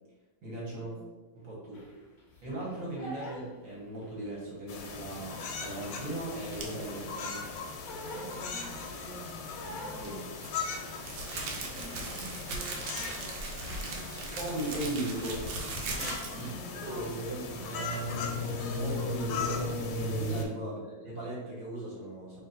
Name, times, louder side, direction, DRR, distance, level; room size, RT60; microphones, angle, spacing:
voice 1, 0.4-0.9 1.3-2.0 2.4-7.5 10.0-10.2 14.4-15.5 16.4-16.5 16.8-22.4, right 1 dB, 45° right, -5 dB, 1.4 m, -38 dB
Crying sobbing, 1.7-4.4 4.7-7.0 7.3-9.0 9.5-11.4 11.7-12.0 12.3-13.9, equal, 50° left, 0.8 m, -47 dB
sound 1, 4.7-20.4, left 3 dB, 75° left, 1.3 m, -37 dB
sound 2, 6.5-6.9 10.0-16.5, right 3 dB, 85° right, 1.5 m, -38 dB
voice 2, 8.0-11.0 11.4-14.3 15.9-18.3 20.2-20.5, right 1 dB, 30° right, -6 dB, 0.5 m, -49 dB
3.1 x 3.0 x 3.9 m, 1.2 s
omnidirectional pair, 2.2 m